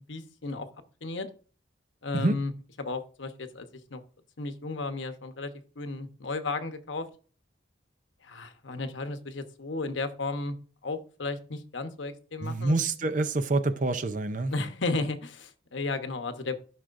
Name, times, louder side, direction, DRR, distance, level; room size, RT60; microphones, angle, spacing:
voice 1, 0.1-0.7 1.0-1.3 2.0-2.5 2.8-4.0 4.4-5.5 5.8-7.1 8.2-10.5 10.8-12.8 14.5-16.6, left 3 dB, 85° left, 1.0 m, -34 dB
voice 2, 12.4-14.5, right 2 dB, 45° right, 0.6 m, -26 dB
13.5 x 6.2 x 2.6 m
head